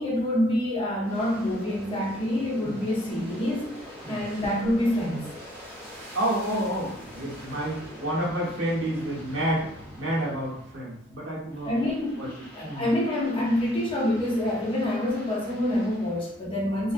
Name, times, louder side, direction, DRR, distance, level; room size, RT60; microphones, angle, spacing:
voice 1, 0.0-3.8 4.1-5.3 11.6-16.9, left 1 dB, 25° left, -4 dB, 0.6 m, -27 dB
Aircraft, 1.0-11.0 11.5-16.5, equal, 5° right, 1.3 m, -44 dB
voice 2, 6.1-9.7 10.0-11.7 12.2-12.3 12.6-12.9, right 1 dB, 70° right, -5 dB, 1.0 m, -29 dB
2.4 x 2.2 x 2.5 m, 0.70 s
head